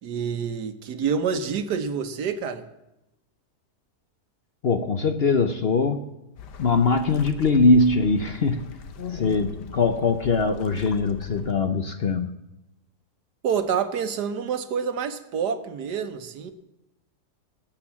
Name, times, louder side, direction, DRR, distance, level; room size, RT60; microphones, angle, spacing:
voice 1, 0.0-2.6 13.4-16.5, right 6 dB, 80° right, 9 dB, 1.6 m, -27 dB
voice 2, 4.6-6.0 6.6-12.3, left 3 dB, 50° left, 7 dB, 0.8 m, -22 dB
sound 1, 6.4-11.5, left 6 dB, 90° left, 1.6 m, -41 dB
19.0 x 7.6 x 7.3 m, 0.94 s
omnidirectional pair, 1.7 m